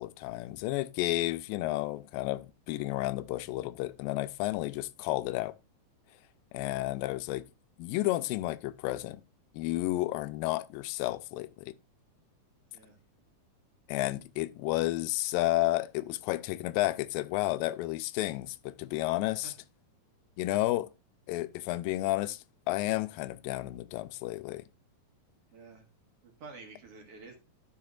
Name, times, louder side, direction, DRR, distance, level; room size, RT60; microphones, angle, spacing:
voice 1, 0.0-5.5 6.5-7.5 7.8-9.2 9.5-11.7 13.9-19.5 20.4-20.9 21.3-24.6, left 17 dB, 85° left, 2.3 m, -31 dB
voice 2, 25.5-25.9 26.2-27.4, right 4 dB, 55° right, 2.1 m, -50 dB
13.0 x 5.6 x 2.4 m
omnidirectional pair, 4.0 m